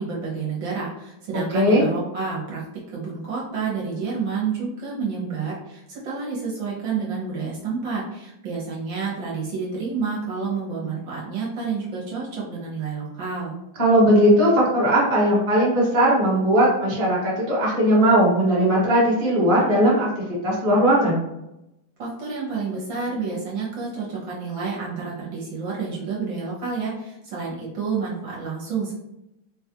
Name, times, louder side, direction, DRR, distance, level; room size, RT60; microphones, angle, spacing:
voice 1, 0.0-2.6 2.9-13.6 22.0-28.9, right 5 dB, 65° right, -5 dB, 1.5 m, -29 dB
voice 2, 1.5-1.8 13.8-20.1 20.4-21.2, equal, 25° right, -6 dB, 1.0 m, -18 dB
3.9 x 2.3 x 2.8 m, 0.89 s
omnidirectional pair, 2.4 m